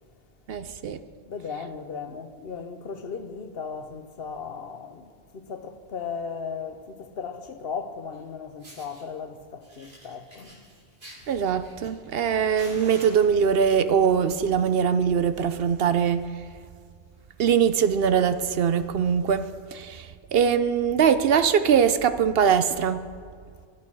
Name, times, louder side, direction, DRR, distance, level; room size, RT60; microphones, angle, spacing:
voice 1, 0.5-1.0 11.3-16.2 17.4-20.1 20.3-23.0, right 7 dB, 65° right, 0.8 m, -22 dB
voice 2, 1.2-10.6, left 5 dB, 60° left, 1.0 m, -36 dB
Fire, 8.1-8.2 8.6-9.0 9.6-12.2 12.6-13.7 14.5-14.8 15.1-15.2 15.6-15.7 15.9-16.2 16.7-16.8 17.8-17.9, right 1 dB, 50° right, 2.9 m, -47 dB
12.5 x 11.5 x 6.2 m
omnidirectional pair, 1.2 m